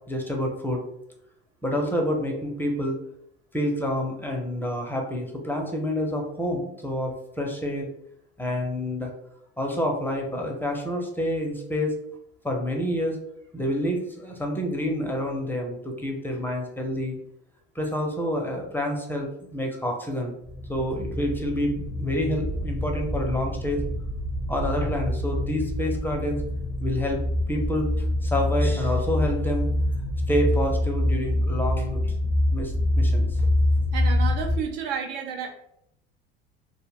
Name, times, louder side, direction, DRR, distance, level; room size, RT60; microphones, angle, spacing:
voice 1, 0.1-0.8 1.6-3.0 3.5-7.9 8.4-9.1 9.6-12.0 12.4-13.2 13.5-17.2 17.8-20.3 20.7-23.8 24.5-26.4 26.8-27.2 27.5-27.9 28.2-29.7 30.3-32.3 32.5-33.5, left 1 dB, 5° left, 1 dB, 0.5 m, -28 dB
sound 1, 20.5-34.6, left 1 dB, 25° right, 0.7 m, -26 dB
voice 2, 33.9-35.6, right 7 dB, 75° right, 3 dB, 0.6 m, -31 dB
2.1 x 2.1 x 3.3 m, 0.75 s
hypercardioid pair, 75°, 31 cm